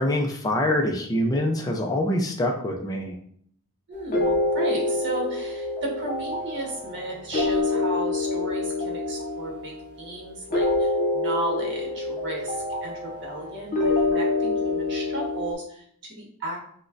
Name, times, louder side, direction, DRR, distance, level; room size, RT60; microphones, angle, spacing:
voice 1, 0.0-3.1, left 1 dB, 15° left, 1 dB, 0.4 m, -25 dB
voice 2, 3.9-16.6, right 2 dB, 55° right, -2 dB, 1.2 m, -34 dB
sound 1, 4.1-15.5, left 2 dB, 35° left, 0.7 m, -26 dB
6.1 x 2.2 x 2.4 m, 0.64 s
head